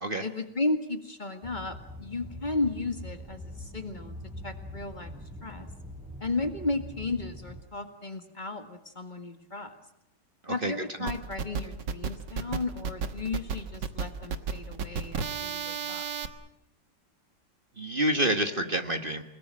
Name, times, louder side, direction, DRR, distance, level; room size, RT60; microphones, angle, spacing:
voice 1, 0.2-4.1 4.4-5.1 5.4-5.7 6.2-9.8 10.5-16.1, left 3 dB, 25° left, 7 dB, 1.9 m, -34 dB
sound 1, 1.4-7.6, equal, ahead, 4.4 m, -43 dB
voice 2, 10.4-10.7 11.0-11.1 17.8-19.2, right 1 dB, 30° right, 7 dB, 1.4 m, -28 dB
sound 2, 11.1-16.3, right 6 dB, 70° right, 2.0 m, -33 dB
29.0 x 19.5 x 7.6 m, 0.84 s
omnidirectional pair, 2.0 m